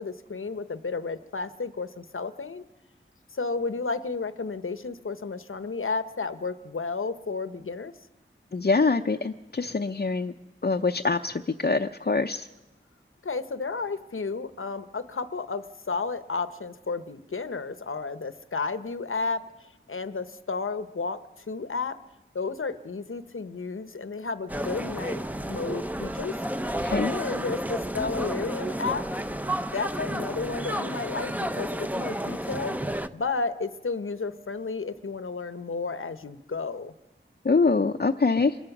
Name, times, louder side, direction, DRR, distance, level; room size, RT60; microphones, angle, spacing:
voice 1, 0.0-2.6 3.3-7.9 13.2-22.0 22.3-26.3 26.9-29.1 29.7-32.8 33.1-36.9, left 4 dB, 75° left, 12 dB, 0.9 m, -32 dB
voice 2, 8.5-10.3 10.6-12.5 26.8-27.1 37.4-38.6, left 4 dB, 50° left, 4 dB, 0.7 m, -24 dB
sound 1, 24.5-33.1, right 1 dB, 10° right, 0.7 m, -31 dB
25.5 x 21.5 x 6.0 m, 1.1 s
wide cardioid pair, 65°, 21 cm